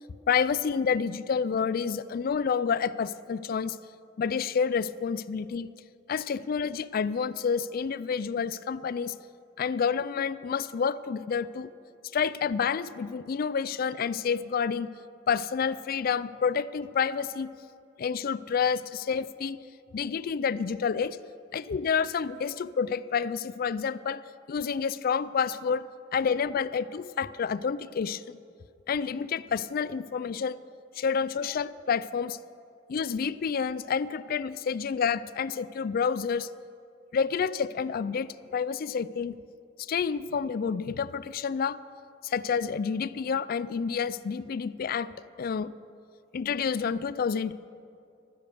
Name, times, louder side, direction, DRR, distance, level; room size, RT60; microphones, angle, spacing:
voice 1, 0.3-3.8 4.2-5.7 6.1-9.1 9.6-11.7 12.1-14.9 15.3-17.5 18.0-19.6 19.9-21.2 21.5-24.2 24.5-25.9 26.1-28.4 28.9-30.6 31.0-32.4 32.9-36.5 37.1-39.3 39.8-41.8 42.2-45.1 45.4-45.7 46.3-47.5, left 6 dB, 50° left, 17 dB, 0.4 m, -29 dB
13.0 x 10.0 x 6.8 m, 2.5 s
head